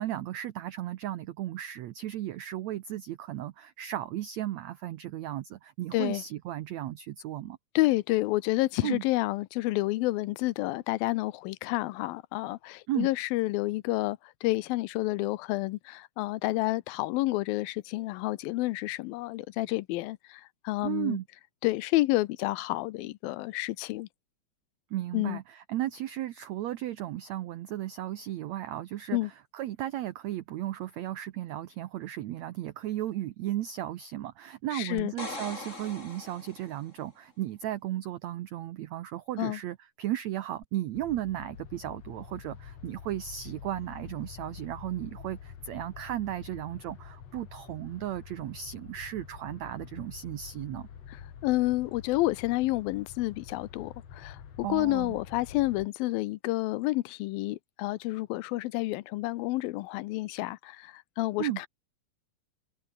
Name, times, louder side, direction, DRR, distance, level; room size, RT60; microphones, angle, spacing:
voice 1, 0.0-7.6 8.8-9.0 12.9-13.1 20.8-21.2 24.9-29.2 29.5-50.9 54.6-55.2 61.4-61.6, right 13 dB, 90° right, 1.5 m, -35 dB
voice 2, 5.9-6.2 7.8-21.2 21.6-24.1 25.1-25.4 29.1-29.3 34.7-35.1 39.4-39.6 51.1-61.7, left 19 dB, 80° left, 2.4 m, -29 dB
sound 1, 35.0-36.9 40.6-40.7, left 2 dB, 20° left, 4.8 m, -41 dB
sound 2, 40.9-55.9, left 8 dB, 50° left, 2.9 m, -47 dB
omnidirectional pair, 4.3 m